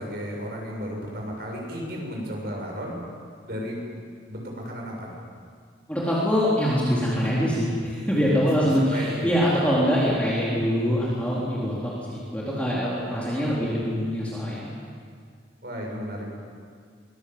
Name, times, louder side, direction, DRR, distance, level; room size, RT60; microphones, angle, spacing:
voice 1, 0.0-3.1 3.4-3.8 4.3-5.1 8.4-9.4 13.1-13.6 15.6-16.3, equal, 55° right, -1 dB, 7.4 m, -34 dB
voice 2, 5.9-14.7, equal, 5° left, -7 dB, 3.9 m, -24 dB
23.5 x 21.5 x 8.0 m, 2.1 s
head